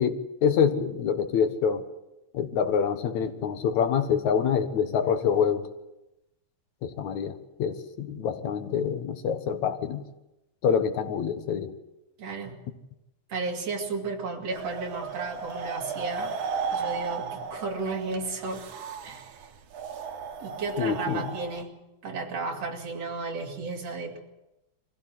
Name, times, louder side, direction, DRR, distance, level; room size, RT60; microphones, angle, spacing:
voice 1, 0.0-1.8 2.3-5.6 6.8-10.0 10.6-11.7 20.8-21.2, left 7 dB, 75° left, 8 dB, 2.7 m, -26 dB
voice 2, 12.2-12.6 13.3-16.3 16.7-18.7 19.0-19.3 20.4-24.2, right 3 dB, 60° right, 1 dB, 3.7 m, -33 dB
sound 1, 14.5-21.6, right 5 dB, 85° right, 2.9 m, -35 dB
23.5 x 16.0 x 7.8 m, 0.93 s
omnidirectional pair, 3.3 m